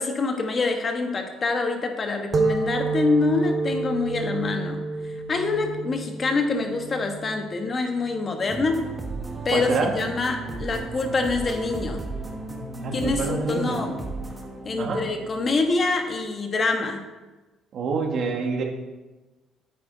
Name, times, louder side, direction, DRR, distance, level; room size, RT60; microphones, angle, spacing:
voice 1, 0.0-4.8 5.3-8.8 9.4-9.7 9.9-12.1 12.9-14.0 14.6-17.0, left 3 dB, 35° left, 4 dB, 1.4 m, -25 dB
sound 1, 2.3-9.6, right 3 dB, 35° right, 1.0 m, -30 dB
sound 2, 8.5-16.3, right 2 dB, 15° right, 1.4 m, -35 dB
voice 2, 9.5-9.9 12.8-13.8 14.8-15.0 17.7-18.6, right 4 dB, 55° right, 2 dB, 1.6 m, -26 dB
10.0 x 8.3 x 4.0 m, 1.2 s
cardioid pair, 110°, 0 cm